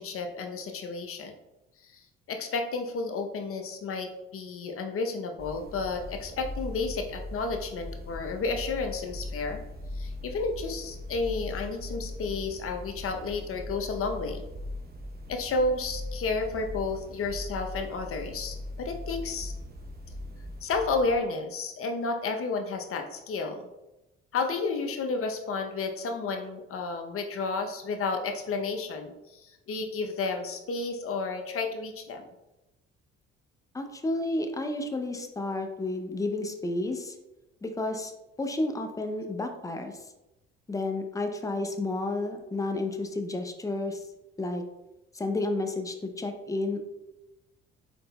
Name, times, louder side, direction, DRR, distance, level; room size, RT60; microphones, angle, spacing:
voice 1, 0.0-1.3 1.8-9.6 9.9-14.4 15.3-19.5 20.6-23.7 24.3-32.2, left 3 dB, 50° left, 5 dB, 0.7 m, -32 dB
sound 1, 5.4-21.2, left 1 dB, 35° right, 0.8 m, -39 dB
voice 2, 33.7-37.1 37.6-38.1 38.4-39.9 40.7-44.0 44.4-44.6 45.1-46.8, left 2 dB, 10° left, 5 dB, 0.5 m, -31 dB
4.3 x 3.8 x 2.2 m, 0.96 s
supercardioid pair, 65°, 29 cm